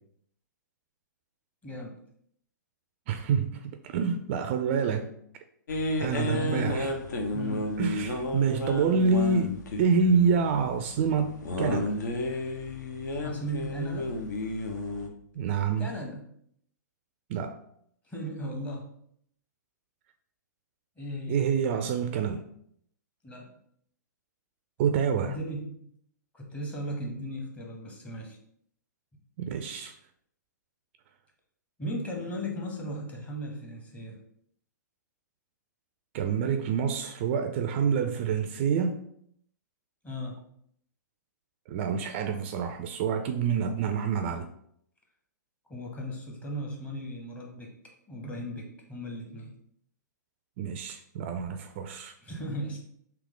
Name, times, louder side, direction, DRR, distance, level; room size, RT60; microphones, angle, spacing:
voice 1, 1.6-2.0 6.3-6.8 7.3-7.7 13.2-14.2 15.8-16.2 18.1-18.9 21.0-21.4 23.2-23.5 25.2-25.9 26.3-28.4 31.8-34.2 40.0-40.4 45.7-47.8 48.1-49.5 52.2-52.8, equal, 15° left, 0 dB, 0.9 m, -36 dB
voice 2, 3.1-5.1 6.0-6.9 7.8-11.3 11.6-12.0 15.4-15.9 17.3-17.6 21.3-22.4 24.8-25.4 29.4-29.9 36.1-39.0 41.7-44.5 50.6-52.2, right 6 dB, 40° right, 7 dB, 0.3 m, -27 dB
sound 1, 5.7-15.1, left 1 dB, 70° left, 0.7 m, -32 dB
3.5 x 2.8 x 3.7 m, 0.68 s
figure-of-eight pair, 120°, 10 cm